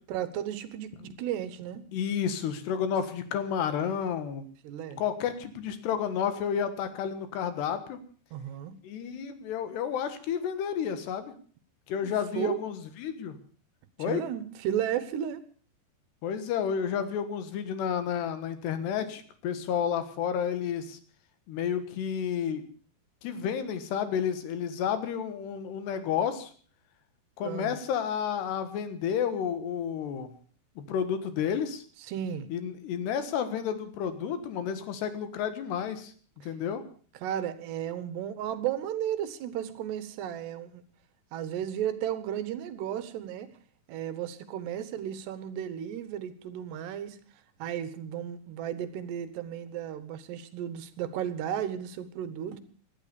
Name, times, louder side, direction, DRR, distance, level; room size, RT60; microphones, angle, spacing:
voice 1, 0.1-1.8 4.6-5.0 8.3-8.7 12.0-12.6 14.0-15.5 27.4-27.8 32.0-32.5 36.4-36.5 37.2-40.8 41.3-43.5 43.9-47.2 47.6-52.6, right 10 dB, 80° right, 3.2 m, -34 dB
voice 2, 1.9-4.5 5.0-8.0 8.8-11.3 11.9-13.4 14.0-14.2 16.2-21.0 21.5-22.6 23.2-26.5 27.4-30.3 30.8-31.8 32.5-36.1 36.4-36.8, left 8 dB, 75° left, 3.7 m, -31 dB
18.0 x 12.0 x 6.8 m
omnidirectional pair, 4.9 m